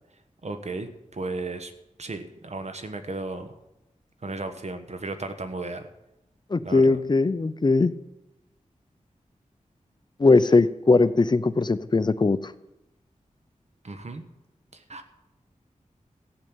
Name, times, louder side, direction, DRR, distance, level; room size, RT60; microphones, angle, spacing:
voice 1, 0.4-1.7 2.0-3.6 4.2-5.9 6.6-7.0 13.8-14.2 14.7-15.0, right 3 dB, 55° right, 8 dB, 1.3 m, -35 dB
voice 2, 6.5-7.9 10.2-12.5, left 3 dB, 35° left, 14 dB, 0.6 m, -20 dB
14.0 x 6.6 x 8.8 m, 0.92 s
wide cardioid pair, 70°, 13 cm